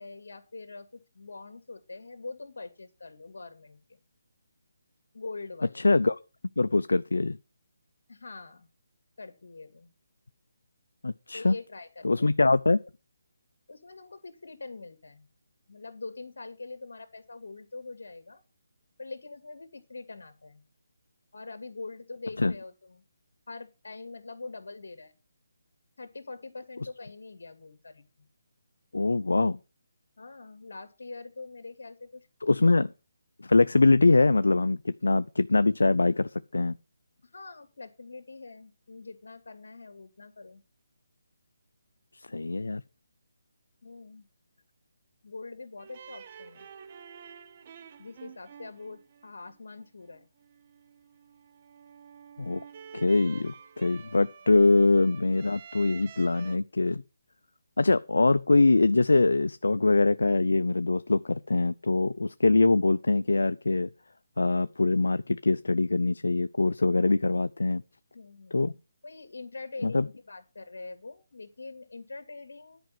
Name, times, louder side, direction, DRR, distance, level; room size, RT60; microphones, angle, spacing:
voice 1, 0.0-4.0 5.1-5.9 8.1-8.7 9.2-9.9 11.3-12.4 13.7-15.3 15.7-18.4 19.0-20.6 21.3-23.0 23.5-25.1 26.0-28.3 30.2-32.3 37.3-40.6 43.8-44.3 45.2-46.7 48.0-50.3 68.1-72.8, left 3 dB, 70° left, 2.2 m, -44 dB
voice 2, 5.8-6.2 6.6-7.4 11.0-11.5 12.0-12.8 22.4-22.5 28.9-29.6 32.4-32.9 33.4-36.8 42.3-42.8 52.4-52.6 52.9-57.0 57.8-63.9 64.4-67.8 68.5-68.7 69.8-70.1, left 3 dB, 85° left, 0.4 m, -23 dB
sound 1, 45.8-56.6, right 7 dB, 35° right, 0.8 m, -50 dB
10.5 x 5.2 x 7.5 m
hypercardioid pair, 160°, 0 cm